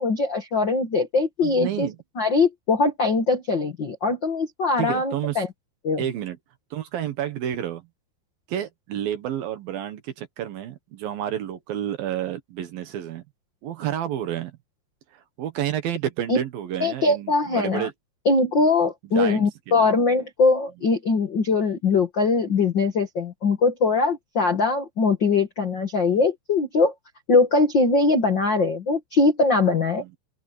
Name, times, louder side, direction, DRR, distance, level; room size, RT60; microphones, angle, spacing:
voice 1, 0.0-1.9 2.2-5.5 5.8-6.0 16.3-16.4 16.8-17.9 18.2-26.9 27.3-30.0, left 3 dB, 65° left, 1.1 m, -21 dB
voice 2, 1.4-2.0 4.8-5.4 6.0-6.4 6.7-7.9 8.5-13.2 13.6-14.6 15.1-17.9 19.1-19.9 29.9-30.1, right 10 dB, 65° right, 2.8 m, -30 dB
open air
omnidirectional pair, 5.2 m